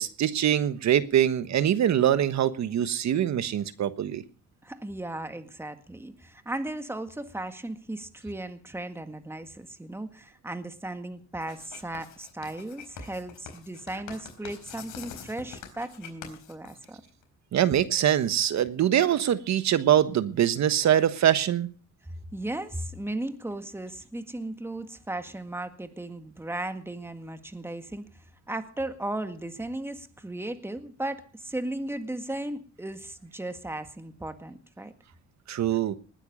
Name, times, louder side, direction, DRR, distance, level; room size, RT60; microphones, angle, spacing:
voice 1, 0.0-4.2 17.5-21.7 35.5-35.9, right 10 dB, 65° right, 13 dB, 1.3 m, -23 dB
voice 2, 4.6-17.0 22.3-28.1 28.5-34.9, right 1 dB, 10° right, 8 dB, 1.8 m, -36 dB
Writing, 11.4-17.2, left 7 dB, 80° left, 4.3 m, -45 dB
20.0 x 10.0 x 5.4 m, 0.40 s
cardioid pair, 90°, 30 cm